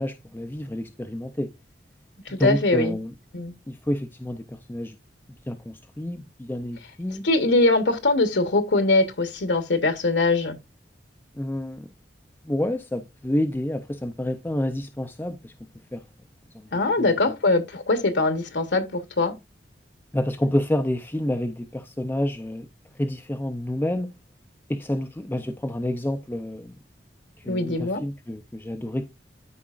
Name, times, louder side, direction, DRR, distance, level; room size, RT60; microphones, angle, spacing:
voice 1, 0.0-1.5 2.3-3.1 3.7-5.0 5.5-7.3 11.3-11.9 12.4-15.5 15.9-16.0 16.5-17.2 20.1-22.7 22.9-24.1 24.7-26.7 27.4-29.1, left 1 dB, 10° left, 0.5 m, -29 dB
voice 2, 2.3-3.0 3.3-3.5 7.2-10.6 16.7-19.3 27.5-28.0, left 2 dB, 80° left, 1.0 m, -22 dB
12.5 x 4.9 x 2.4 m
head